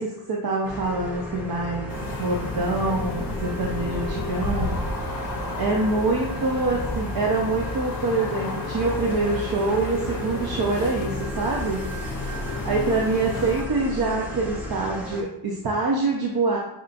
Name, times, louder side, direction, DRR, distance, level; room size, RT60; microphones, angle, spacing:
voice 1, 0.0-1.9 2.2-4.8 5.6-11.8 12.6-16.6, right 3 dB, 55° right, -2 dB, 0.6 m, -25 dB
sound 1, 0.6-15.2, equal, 5° right, 0.6 m, -34 dB
sound 2, 1.9-13.6, left 3 dB, 50° left, 0.6 m, -32 dB
6.1 x 2.4 x 2.4 m, 0.87 s
wide cardioid pair, 170°, 44 cm